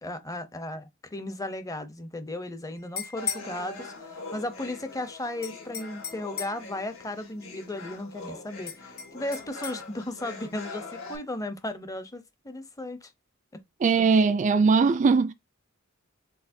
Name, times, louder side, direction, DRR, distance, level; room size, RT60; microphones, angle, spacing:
voice 1, 0.0-13.1 13.5-13.6, left 1 dB, 15° left, 0.7 m, -35 dB
sound 1, 2.8-3.5 5.4-6.7 8.7-9.8, left 7 dB, 45° left, 1.9 m, -36 dB
sound 2, 3.2-11.2, left 3 dB, 80° left, 2.3 m, -43 dB
voice 2, 13.8-15.3, right 4 dB, 35° right, 0.3 m, -20 dB
4.7 x 4.0 x 2.6 m
head